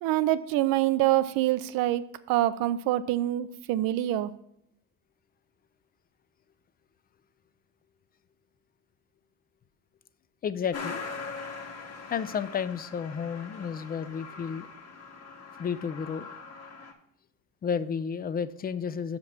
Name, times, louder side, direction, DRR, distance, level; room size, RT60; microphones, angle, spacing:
voice 1, 0.0-4.3, right 14 dB, 75° right, 15 dB, 0.6 m, -26 dB
voice 2, 10.4-11.0 12.1-14.7 15.6-16.3 17.6-19.2, left 7 dB, 25° left, 14 dB, 0.4 m, -32 dB
Truck, 10.7-16.9, left 4 dB, 45° left, 1.5 m, -42 dB
7.0 x 5.1 x 6.0 m, 0.73 s
cardioid pair, 110°, 35 cm